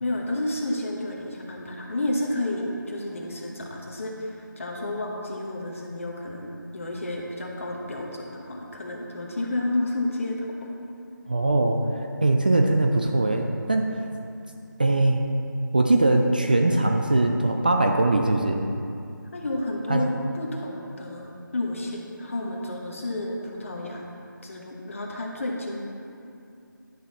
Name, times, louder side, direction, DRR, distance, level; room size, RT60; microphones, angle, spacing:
voice 1, 0.0-10.7 19.3-24.0 24.4-25.8, left 1 dB, 40° left, -1 dB, 1.2 m, -31 dB
voice 2, 11.3-11.8 12.2-13.9 14.8-15.2 15.7-18.6 19.9-20.0, right 2 dB, 25° right, 2 dB, 0.3 m, -21 dB
11.0 x 6.2 x 4.2 m, 2.6 s
figure-of-eight pair, 165°, 11 cm